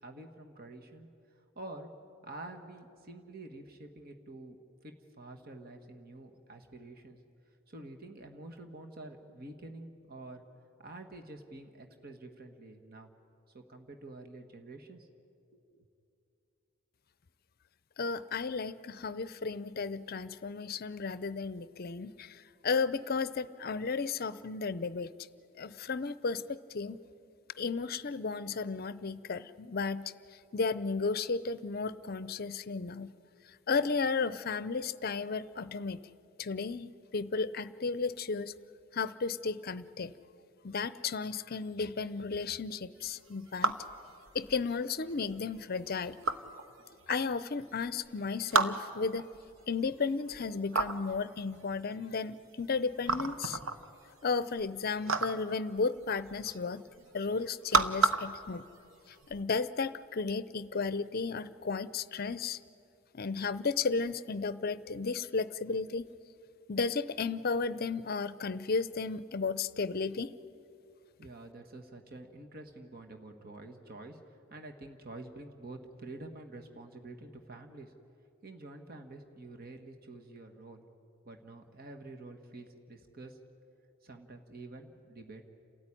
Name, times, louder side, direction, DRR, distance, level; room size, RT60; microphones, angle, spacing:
voice 1, 0.0-1.1 1.5-1.9 2.2-4.6 4.8-7.2 7.7-10.4 10.8-13.1 13.5-15.1 15.5-15.9 71.2-77.9 78.4-80.8 81.2-83.4 84.0-85.4, right 2 dB, 45° right, 4 dB, 1.6 m, -48 dB
voice 2, 18.0-22.4 22.6-25.1 25.6-27.0 27.6-30.1 30.5-33.1 33.7-36.0 36.4-38.5 38.9-40.1 40.6-43.7 44.3-46.2 47.1-49.3 49.7-53.6 54.2-56.8 57.1-58.7 59.3-62.6 63.1-66.0 66.7-70.3, left 4 dB, 45° left, 16 dB, 0.6 m, -34 dB
sound 1, 43.0-59.4, right 3 dB, 70° right, 1.1 m, -34 dB
29.5 x 13.5 x 9.9 m, 2.7 s
head